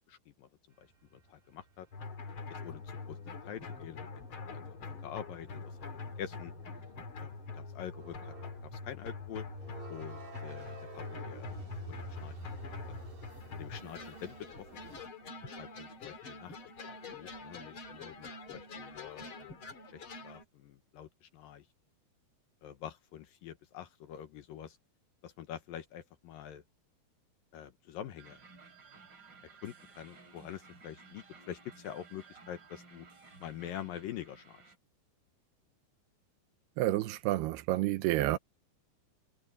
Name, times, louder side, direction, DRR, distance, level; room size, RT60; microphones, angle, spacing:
voice 1, 0.1-0.5 0.8-1.9 2.6-3.2 3.4-5.5 5.9-6.5 7.2-8.3 8.7-9.5 9.9-11.5 11.9-12.5 12.9-13.0 13.5-14.7 15.5-19.5 19.9-21.6 22.6-24.8 25.2-26.6 27.5-28.4 29.6-33.1 33.4-34.6, left 10 dB, 70° left, 2.5 m, -46 dB
sound 1, 0.8-15.1, right 3 dB, 55° right, 7.6 m, -51 dB
sound 2, 1.9-20.4, left 4 dB, 40° left, 2.3 m, -45 dB
sound 3, 28.2-34.8, right 4 dB, 30° right, 3.3 m, -56 dB
voice 2, 36.8-38.4, right 15 dB, 75° right, 2.7 m, -29 dB
omnidirectional pair, 4.9 m